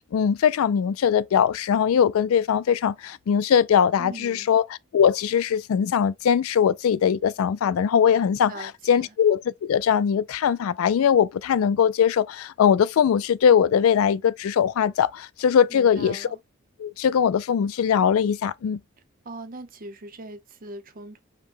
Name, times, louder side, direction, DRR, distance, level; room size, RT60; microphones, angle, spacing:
voice 1, 0.1-4.6 4.9-16.3 16.8-18.8, left 8 dB, 85° left, 0.3 m, -21 dB
voice 2, 4.0-4.5 8.5-8.7 9.0-9.1 15.7-16.4 19.2-21.2, right 2 dB, 45° right, 0.7 m, -40 dB
5.3 x 2.2 x 3.1 m
head